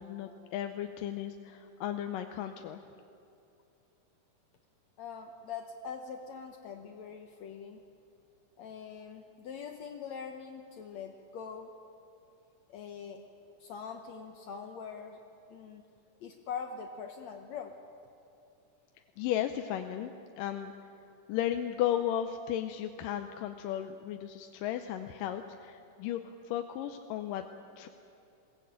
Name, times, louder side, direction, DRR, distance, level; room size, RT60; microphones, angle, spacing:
voice 1, 0.0-2.8 19.2-20.1 20.4-20.7 21.3-27.4 27.8-27.9, left 11 dB, 90° left, 6 dB, 2.4 m, -35 dB
voice 2, 5.0-7.8 8.6-11.7 12.7-13.2 13.6-15.2 15.5-15.8 16.2-17.8, left 6 dB, 70° left, 5 dB, 1.9 m, -43 dB
22.0 x 17.5 x 8.9 m, 2.7 s
omnidirectional pair, 3.9 m